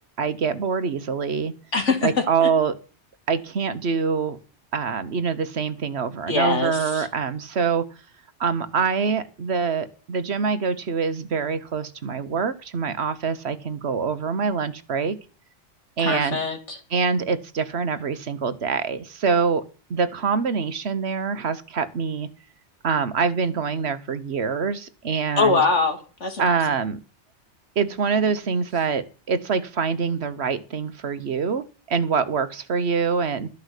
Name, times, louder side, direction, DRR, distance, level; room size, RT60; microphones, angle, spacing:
voice 1, 0.2-1.5 2.0-2.7 3.3-4.4 4.7-7.9 8.4-15.2 16.0-16.4 16.9-19.6 19.9-22.3 22.8-25.6 26.4-27.0 27.8-33.5, right 5 dB, 65° right, 12 dB, 1.3 m, -25 dB
voice 2, 1.7-2.1 2.4-2.5 6.3-7.1 16.0-16.8 25.4-26.6, left 4 dB, 90° left, 4 dB, 3.0 m, -23 dB
13.0 x 5.5 x 8.2 m, 0.36 s
omnidirectional pair, 1.2 m